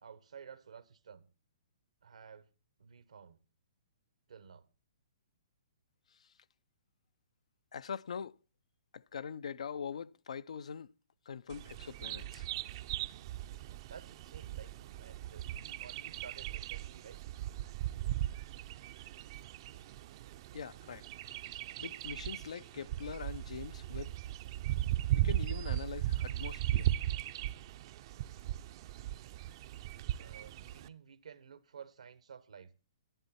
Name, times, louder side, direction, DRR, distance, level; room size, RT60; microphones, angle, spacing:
voice 1, 0.0-1.3 2.0-2.5 2.8-3.4 4.3-4.7 13.9-17.2 25.1-25.3 30.2-32.7, right 7 dB, 85° right, 1.3 m, -53 dB
voice 2, 7.7-8.4 8.9-10.9 11.3-12.5 20.5-24.2 25.1-26.9, left 7 dB, 75° left, 0.5 m, -43 dB
Bird vocalization bird call bird song, 11.5-30.9, right 14 dB, 45° right, 0.5 m, -37 dB
11.0 x 10.0 x 4.2 m
hypercardioid pair, 140°, 4 cm